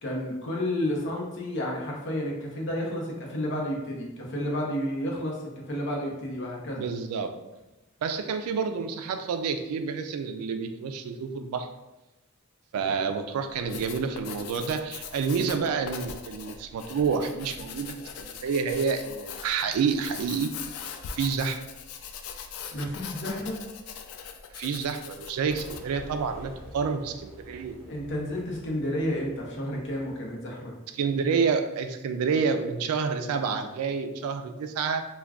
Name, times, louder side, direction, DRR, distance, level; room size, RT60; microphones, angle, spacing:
voice 1, 0.0-6.9 22.7-23.6 27.8-30.7, left 1 dB, 55° left, -2 dB, 0.7 m, -31 dB
voice 2, 6.8-7.3 8.0-11.7 12.7-20.5 21.1-21.6 24.5-27.8 30.9-35.0, right 5 dB, 80° right, 8 dB, 0.3 m, -28 dB
Writing, 13.5-26.0, left 7 dB, 80° left, 0.3 m, -41 dB
sound 1, 25.5-30.5, equal, ahead, 1.2 m, -48 dB
2.4 x 2.2 x 3.4 m, 0.99 s
head